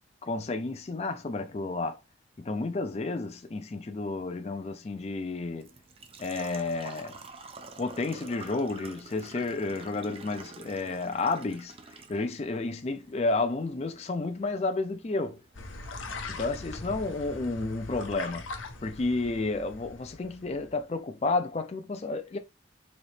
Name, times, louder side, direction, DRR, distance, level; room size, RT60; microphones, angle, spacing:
voice 1, 0.2-2.0 2.4-5.7 6.2-7.2 7.8-11.7 12.1-15.4 16.3-22.4, left 3 dB, 35° left, 0.4 m, -31 dB
Engine / Trickle dribble / Fill (with liquid), 4.9-16.9, right 4 dB, 30° right, 0.5 m, -49 dB
sound 1, 15.5-20.8, left 3 dB, 90° left, 0.8 m, -41 dB
4.1 x 2.9 x 3.2 m
head